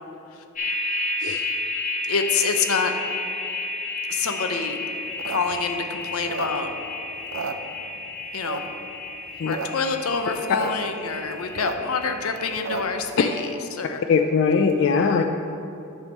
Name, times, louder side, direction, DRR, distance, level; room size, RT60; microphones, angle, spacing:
sound 1, 0.5-13.0, left 2 dB, 35° left, 1.0 m, -32 dB
voice 1, 2.1-2.9 4.1-4.8 5.3-6.7 8.3-8.6 9.5-14.0, left 5 dB, 85° left, 6 dB, 0.7 m, -26 dB
sound 2, 5.0-6.9 7.2-8.1 8.4-8.9 9.3-9.7 9.9-10.0 10.2-10.7 11.1-13.1, right 5 dB, 65° right, 0.5 m, -33 dB
voice 2, 14.1-15.2, left 5 dB, 60° left, 5 dB, 0.3 m, -20 dB
9.8 x 3.5 x 6.3 m, 2.8 s
head